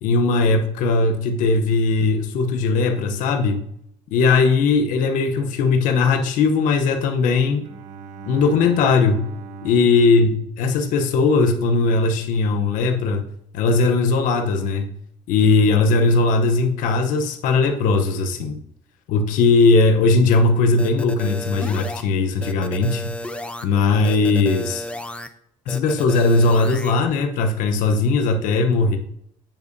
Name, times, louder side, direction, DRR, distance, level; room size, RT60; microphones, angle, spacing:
voice 1, 0.0-3.6 4.1-7.7 8.2-9.2 9.6-13.2 13.5-14.9 15.3-18.6 19.1-23.1 23.6-24.9 25.7-29.0, left 3 dB, 80° left, 6 dB, 0.8 m, -19 dB
Bowed string instrument, 7.6-11.3, right 5 dB, 65° right, 0.6 m, -40 dB
sound 1, 20.8-22.0 22.4-23.7 24.0-25.3 25.7-26.9, left 1 dB, 10° left, 0.5 m, -33 dB
8.8 x 5.2 x 2.6 m, 0.72 s
cardioid pair, 105°, 13 cm